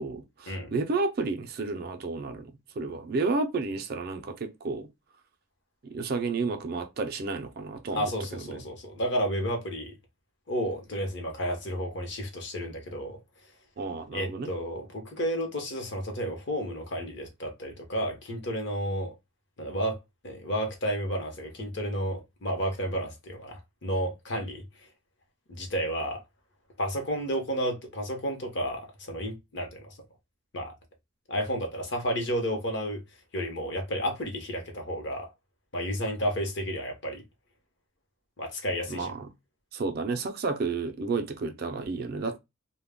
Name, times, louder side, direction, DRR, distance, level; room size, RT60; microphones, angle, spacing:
voice 1, 0.0-4.9 5.8-8.6 13.8-14.5 38.9-39.3 39.7-42.4, right 3 dB, 50° right, 0.4 m, -31 dB
voice 2, 7.9-9.9 10.5-13.2 14.1-19.1 19.6-20.0 20.2-24.6 25.5-26.2 26.8-29.9 30.5-30.7 31.3-33.0 33.3-35.3 35.7-37.2 38.4-39.1, equal, 60° left, 0.8 m, -31 dB
2.2 x 2.1 x 3.4 m
head